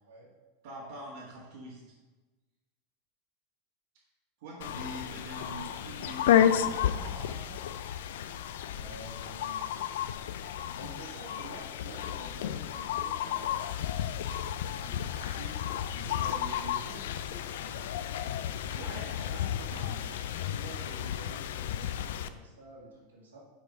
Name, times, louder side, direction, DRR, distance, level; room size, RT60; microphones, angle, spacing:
voice 1, 0.6-1.9 4.4-7.6 18.7-20.2, right 1 dB, 75° right, -7 dB, 1.7 m, -45 dB
sound 1, 4.6-22.3, left 10 dB, 75° left, 0.4 m, -32 dB
voice 2, 8.7-9.7 10.4-13.9 14.7-15.6 15.9-17.9 19.2-23.5, right 2 dB, 90° right, -4 dB, 2.1 m, -49 dB
6.0 x 4.8 x 5.0 m, 1.2 s
hypercardioid pair, 100°, 0 cm